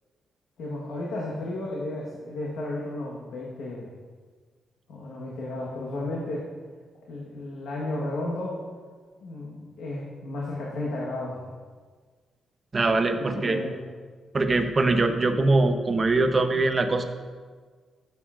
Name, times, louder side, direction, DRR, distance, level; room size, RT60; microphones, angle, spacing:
voice 1, 0.6-3.9 4.9-6.5 7.1-8.6 9.2-11.5 13.1-13.8, left 2 dB, 85° left, -4 dB, 1.3 m, -33 dB
voice 2, 12.7-13.6 14.3-17.0, right 2 dB, 30° right, 6 dB, 0.7 m, -22 dB
13.5 x 7.1 x 2.5 m, 1.5 s
cardioid pair, 110°, 0 cm